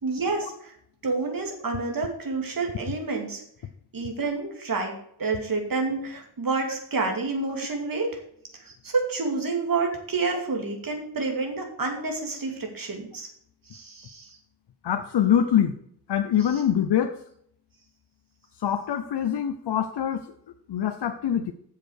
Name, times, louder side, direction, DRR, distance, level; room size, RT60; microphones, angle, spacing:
voice 1, 0.0-0.7 1.0-3.4 3.9-4.9 5.2-8.2 8.6-13.3 13.7-14.4, right 3 dB, 55° right, 2 dB, 2.5 m, -29 dB
voice 2, 14.8-15.7 16.1-17.2 18.6-20.3 20.7-21.5, left 9 dB, 80° left, 7 dB, 0.7 m, -24 dB
8.0 x 6.8 x 6.4 m, 0.68 s
wide cardioid pair, 115°, 40 cm